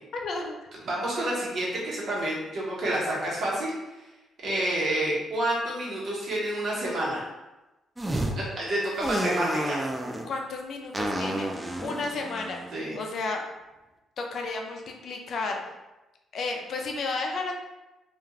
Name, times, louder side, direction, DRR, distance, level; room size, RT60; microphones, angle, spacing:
voice 1, 0.1-0.6 2.8-2.9 10.2-11.5 11.8-13.4 14.2-15.6 16.3-17.5, left 3 dB, 60° left, 2 dB, 0.4 m, -32 dB
voice 2, 0.8-3.7 4.4-7.2 8.4-9.8 12.7-13.0, right 1 dB, 55° right, -5 dB, 1.0 m, -29 dB
sound 1, 8.0-8.3 9.0-10.3 10.9-13.3, right 1 dB, 15° right, 0.3 m, -31 dB
2.4 x 2.3 x 3.1 m, 1.0 s
cardioid pair, 80°, 0 cm